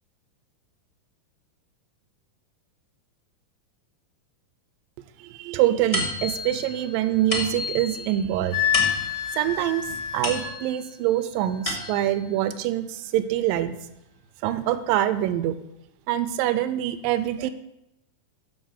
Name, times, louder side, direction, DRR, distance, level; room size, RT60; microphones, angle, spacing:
voice 1, 5.2-8.8 9.3-9.9 10.1-13.7 14.4-15.6 16.1-17.5, right 12 dB, 85° right, 12 dB, 2.3 m, -25 dB
sound 1, 5.9-10.9 11.4-12.2, left 2 dB, 20° left, 0.9 m, -32 dB
Wind instrument woodwind instrument, 8.5-10.5, left 10 dB, 65° left, 1.6 m, -27 dB
7.3 x 6.4 x 7.1 m, 0.88 s
omnidirectional pair, 3.9 m